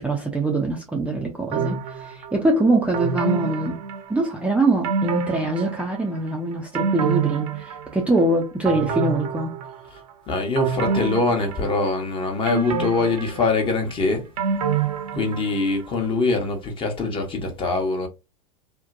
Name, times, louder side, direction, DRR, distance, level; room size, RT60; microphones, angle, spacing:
voice 1, 0.0-3.8 4.1-9.5, right 2 dB, 5° right, 0.5 m, -23 dB
sound 1, 1.5-2.3 2.9-4.4 4.8-6.2 6.5-8.2 8.7-10.0 10.6-12.0 12.5-15.7 16.0-16.1, right 6 dB, 65° right, 0.7 m, -27 dB
voice 2, 10.3-14.2 15.2-18.1, left 3 dB, 25° left, 1.0 m, -23 dB
2.7 x 2.1 x 2.5 m
hypercardioid pair, 95°, 20 cm